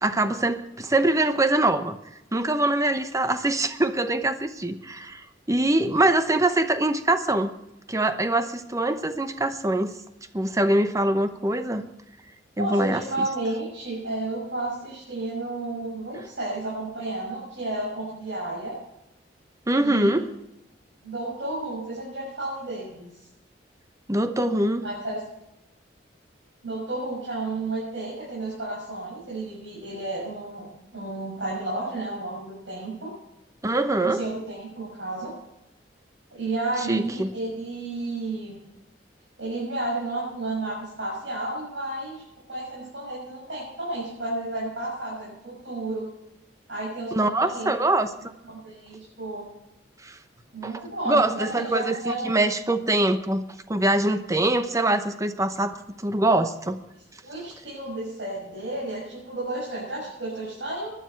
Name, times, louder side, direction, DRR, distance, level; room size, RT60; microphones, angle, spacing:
voice 1, 0.0-2.0 2.3-7.5 7.9-9.9 10.3-11.8 12.6-13.3 19.7-20.3 24.1-24.8 33.6-34.2 36.9-37.3 47.1-48.1 50.0-50.2 50.6-50.7 51.0-56.8, right 1 dB, 20° right, 9 dB, 0.9 m, -23 dB
voice 2, 12.6-18.8 19.8-20.3 21.0-23.1 24.8-25.2 26.6-30.7 30.9-33.1 34.0-35.3 36.3-38.6 39.4-42.2 42.5-46.1 46.7-47.8 48.5-49.4 50.5-52.3 57.2-60.9, right 2 dB, 85° right, -6 dB, 6.9 m, -32 dB
20.0 x 12.0 x 4.6 m, 0.88 s
head